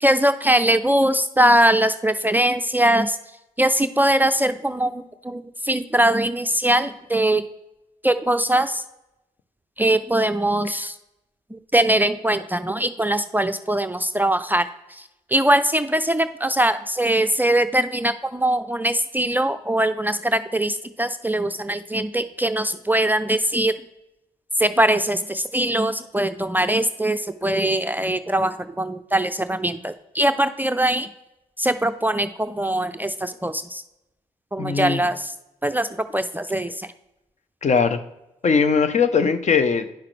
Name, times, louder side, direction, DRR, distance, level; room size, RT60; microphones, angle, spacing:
voice 1, 0.0-3.2 3.6-7.4 8.0-8.8 9.8-10.9 11.5-14.7 15.3-23.7 24.6-31.1 31.6-33.8 34.5-35.3 35.6-36.9, right 1 dB, 10° right, 9 dB, 0.5 m, -21 dB
voice 2, 34.6-35.0 37.6-38.0 38.4-39.9, left 5 dB, 45° left, 10 dB, 0.8 m, -20 dB
10.0 x 5.7 x 3.3 m, 0.91 s
hypercardioid pair, 45°, 17 cm